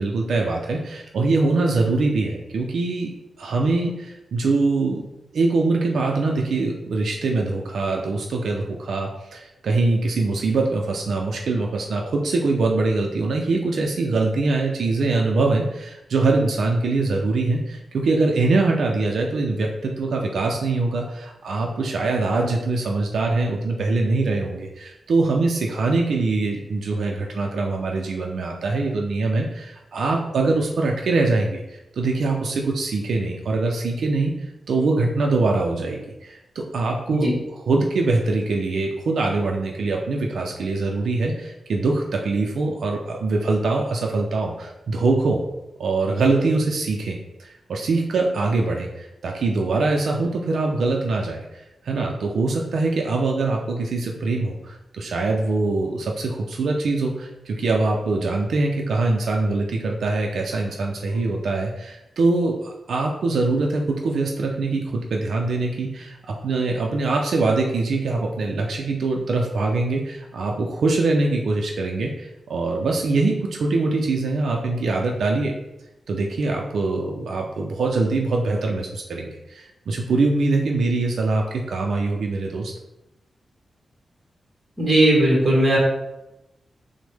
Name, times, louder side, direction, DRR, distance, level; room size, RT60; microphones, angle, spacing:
voice 1, 0.0-3.1 3.4-5.0 5.3-34.3 34.7-45.4 45.8-75.5 76.1-82.7, right 3 dB, 75° right, 0 dB, 0.4 m, -23 dB
voice 2, 84.8-85.8, right 1 dB, 25° right, -3 dB, 1.2 m, -17 dB
6.1 x 2.1 x 3.4 m, 0.95 s
wide cardioid pair, 175°, 0 cm